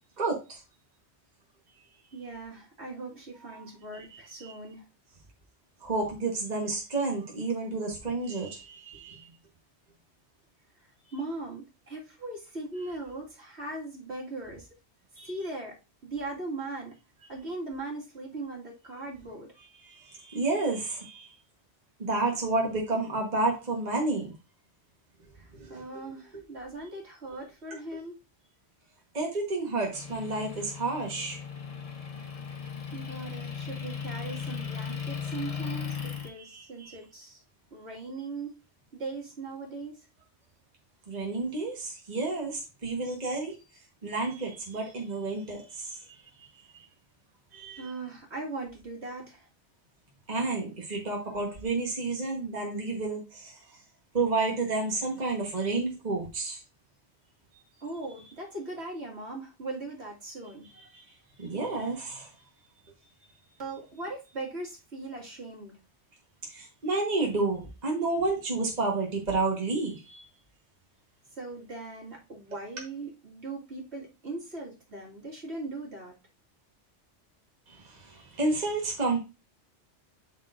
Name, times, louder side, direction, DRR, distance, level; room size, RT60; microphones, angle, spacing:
voice 1, 0.2-0.6 3.5-3.6 4.1-4.5 5.8-9.3 15.2-15.3 19.8-21.3 22.0-24.3 25.5-25.8 29.1-31.4 36.3-37.0 41.1-43.6 44.0-46.0 46.4-46.5 47.5-47.9 50.3-53.6 54.1-56.6 60.9-61.0 61.4-62.3 66.5-70.3 77.7-79.2, right 3 dB, 40° right, 1.5 m, -30 dB
voice 2, 2.1-4.9 11.1-14.7 15.2-15.8 16.0-16.9 17.3-19.5 25.3-28.2 32.9-37.4 37.7-38.5 38.9-40.1 47.8-49.5 57.8-60.7 63.6-65.7 71.4-76.1, right 2 dB, 65° right, 2.4 m, -39 dB
Motor vehicle (road) / Engine, 29.9-36.3, left 7 dB, 35° left, 1.1 m, -37 dB
12.0 x 4.2 x 2.6 m
omnidirectional pair, 1.2 m